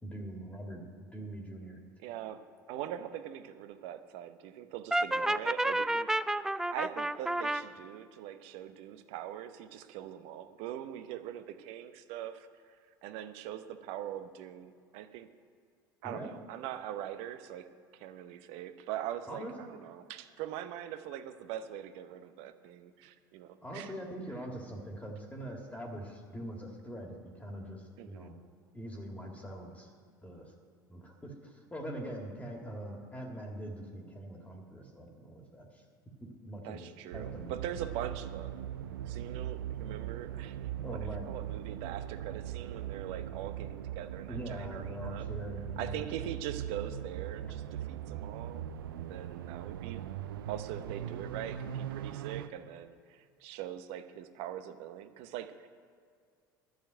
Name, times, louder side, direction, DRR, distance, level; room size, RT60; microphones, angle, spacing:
voice 1, 0.0-1.8 16.0-16.3 19.3-19.6 23.6-28.4 28.7-29.9 30.2-30.5 30.9-35.8 36.2-36.9 37.1-37.8 40.8-41.3 44.3-46.0 47.5-47.6, right 1 dB, 10° left, 1 dB, 1.9 m, -43 dB
voice 2, 2.0-2.4 2.7-6.1 6.7-12.8 13.0-15.3 16.0-17.7 17.9-23.9 28.0-28.3 36.6-38.6 39.0-41.0 41.3-45.3 45.8-48.7 48.9-50.0 50.5-55.7, right 11 dB, 60° right, 10 dB, 0.9 m, -42 dB
Brass instrument, 4.9-7.6, right 1 dB, 5° right, 0.3 m, -30 dB
sound 1, 37.1-52.5, right 10 dB, 75° right, 0.5 m, -40 dB
11.5 x 6.7 x 9.0 m, 2.2 s
hypercardioid pair, 70°, 12 cm